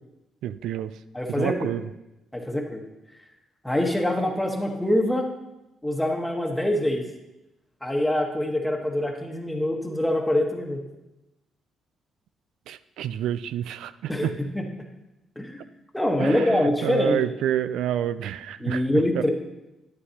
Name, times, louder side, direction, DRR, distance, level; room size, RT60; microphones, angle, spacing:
voice 1, 0.4-0.9 1.3-1.8 12.7-14.3 16.2-18.8 19.1-19.3, right 10 dB, 85° right, 14 dB, 0.4 m, -28 dB
voice 2, 1.1-1.7 2.3-2.8 3.6-5.3 5.8-7.0 7.8-10.8 14.1-14.6 15.4-15.6 15.9-17.2 18.6-19.3, left 1 dB, 5° left, 2 dB, 1.3 m, -24 dB
11.0 x 9.5 x 2.9 m, 0.97 s
cardioid pair, 90°, 0 cm